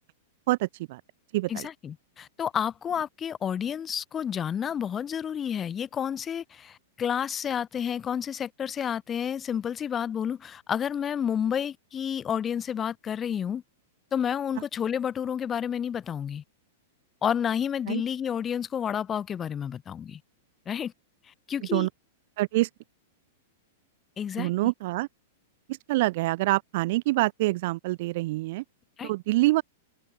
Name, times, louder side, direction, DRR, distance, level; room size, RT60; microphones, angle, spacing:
voice 1, 0.5-1.0 1.3-1.7 17.9-18.0 21.7-21.9 22.4-22.7 24.4-25.1 25.7-28.6 29.0-29.6, right 19 dB, 45° right, 1.7 m, -26 dB
voice 2, 1.5-13.6 14.1-16.4 17.2-20.2 20.7-20.9 21.5-21.9 24.2-24.5 29.0-29.1, left 8 dB, 15° left, 4.6 m, -30 dB
supercardioid pair, 170°, 0 cm